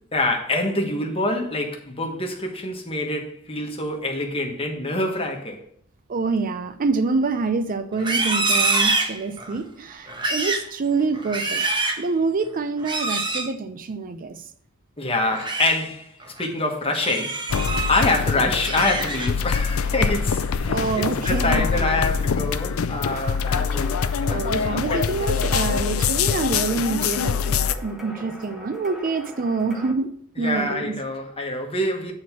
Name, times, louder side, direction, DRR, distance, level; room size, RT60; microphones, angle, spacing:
voice 1, 0.1-5.7 15.0-17.5 17.9-24.0 24.3-25.1 30.4-32.1, left 2 dB, 25° left, 1.3 m, -26 dB
voice 2, 6.1-11.7 12.0-14.4 20.7-22.2 24.2-30.9, right 4 dB, 40° right, 0.5 m, -26 dB
Livestock farm animals working animals, 7.9-9.6 10.1-10.7 11.1-12.1 12.8-13.5 15.2-15.8 16.2-16.5 16.9-18.1 18.5-19.5 19.9-20.3 20.7-21.1, right 3 dB, 20° right, 1.1 m, -26 dB
sound 1, 17.5-27.7, left 6 dB, 75° left, 0.5 m, -24 dB
sound 2, 23.1-29.9, left 1 dB, ahead, 1.1 m, -42 dB
7.8 x 4.3 x 6.0 m
head